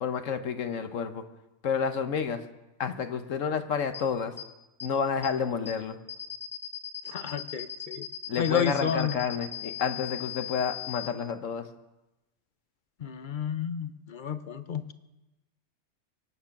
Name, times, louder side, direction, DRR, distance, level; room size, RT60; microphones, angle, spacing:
voice 1, 0.0-1.2 1.6-2.4 2.8-4.3 4.8-6.0 8.3-11.7, left 6 dB, 65° left, 9 dB, 1.3 m, -30 dB
sound 1, 3.9-4.0 4.4-4.5 4.8-4.9 5.2-5.3 5.6-5.7 6.1-11.1, left 10 dB, ahead, 0.9 m, -38 dB
voice 2, 7.1-8.1 8.4-9.1 13.0-14.9, left 7 dB, 45° left, 12 dB, 0.7 m, -31 dB
24.0 x 9.1 x 5.9 m, 1.0 s
omnidirectional pair, 1.5 m